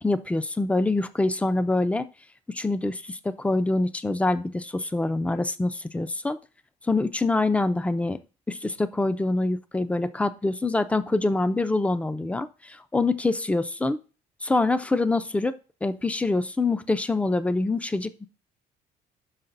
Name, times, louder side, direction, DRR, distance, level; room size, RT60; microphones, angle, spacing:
voice 1, 0.0-2.1 2.5-6.4 6.9-8.2 8.5-14.0 14.4-15.6 15.8-18.3, left 2 dB, 10° left, 12 dB, 0.5 m, -25 dB
5.7 x 5.7 x 4.0 m, 0.32 s
cardioid pair, 110°, 17 cm